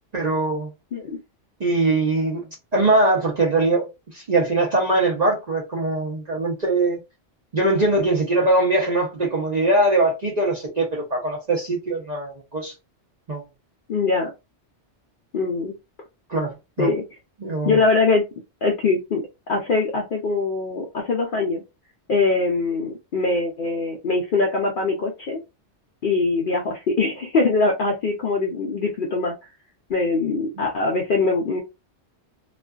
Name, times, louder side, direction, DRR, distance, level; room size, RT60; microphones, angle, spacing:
voice 1, 0.1-0.7 1.6-2.4 2.7-7.0 7.5-12.7 13.3-13.4 16.3-16.9 17.4-17.8 30.6-30.7, right 2 dB, 45° right, 0.7 m, -22 dB
voice 2, 13.9-14.3 15.3-15.7 16.8-17.0 17.6-18.2 18.6-21.6 22.1-25.4 26.0-29.3 29.9-31.6, left 3 dB, 60° left, 0.6 m, -22 dB
2.4 x 2.3 x 2.2 m
omnidirectional pair, 1.2 m